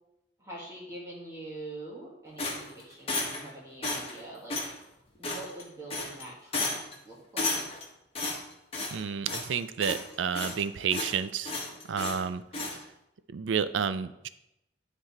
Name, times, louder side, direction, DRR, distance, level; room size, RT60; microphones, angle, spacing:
voice 1, 0.4-4.5 5.2-7.6, right 2 dB, 15° right, -5 dB, 1.7 m, -44 dB
sound 1, 2.4-3.5 3.8-4.2 4.5-4.7 5.2-5.6 5.9-6.2 6.5-6.9 7.4-7.8 8.1-9.0 9.3-9.5 9.8-10.6 10.9-11.2 11.4-12.2 12.5-12.8, left 3 dB, 30° left, 1.4 m, -33 dB
voice 2, 8.9-11.6 11.9-12.4 13.3-14.3, right 7 dB, 80° right, 14 dB, 0.4 m, -30 dB
10.5 x 4.1 x 4.2 m, 0.86 s
head